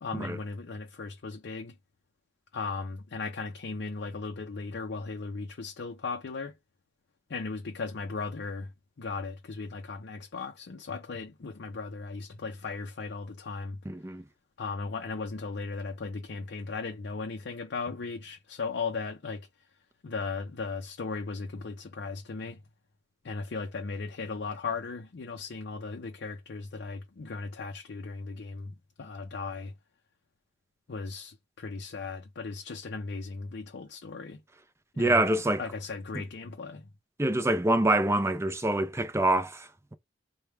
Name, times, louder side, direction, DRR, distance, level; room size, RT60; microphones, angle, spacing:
voice 1, 0.0-1.7 2.5-6.5 7.3-8.7 9.0-13.8 14.6-19.5 20.0-22.6 23.2-29.7 30.9-34.4 34.9-35.2 35.6-36.9, left 4 dB, 65° left, 0.5 m, -37 dB
voice 2, 13.9-14.2 35.0-35.6 37.2-39.9, right 1 dB, 15° right, 0.5 m, -26 dB
3.3 x 2.2 x 4.3 m
head